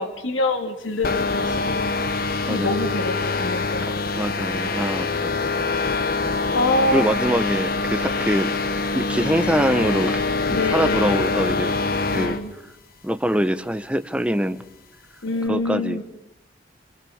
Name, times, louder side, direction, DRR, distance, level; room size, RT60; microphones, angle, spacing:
voice 1, 0.0-3.9 6.5-7.1 10.5-11.3 12.1-12.5 15.2-16.0, left 2 dB, 90° left, 7 dB, 2.7 m, -26 dB
sound 1, 1.0-12.4, left 3 dB, 50° left, 1.4 m, -24 dB
voice 2, 3.8-5.3 6.9-8.5 8.9-10.2 10.5-11.8 12.1-12.4 13.0-14.6 15.5-16.0, equal, 5° right, 11 dB, 0.9 m, -24 dB
26.5 x 25.0 x 7.2 m, 0.83 s
head